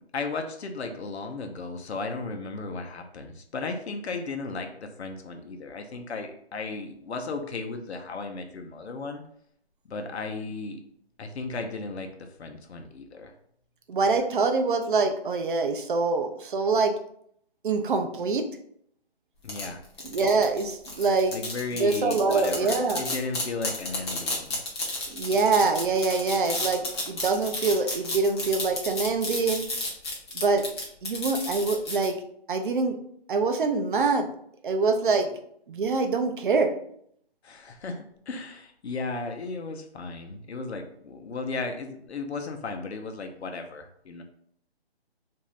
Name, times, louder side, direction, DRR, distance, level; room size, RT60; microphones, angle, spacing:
voice 1, 0.1-9.2 9.8-10.8 11.2-13.3 19.4-19.8 21.3-24.6 37.4-44.2, left 3 dB, 90° left, 5 dB, 0.7 m, -35 dB
voice 2, 13.9-16.9 17.6-18.4 20.1-21.3 21.8-23.0 25.1-29.6 30.3-30.6 31.0-32.2 32.5-33.0 33.3-34.3 34.6-35.3 35.7-36.7, right 4 dB, 55° right, 6 dB, 0.5 m, -24 dB
sound 1, 19.5-32.1, left 2 dB, 25° left, 0.6 m, -32 dB
2.6 x 2.4 x 3.1 m, 0.67 s
hypercardioid pair, 160°, 32 cm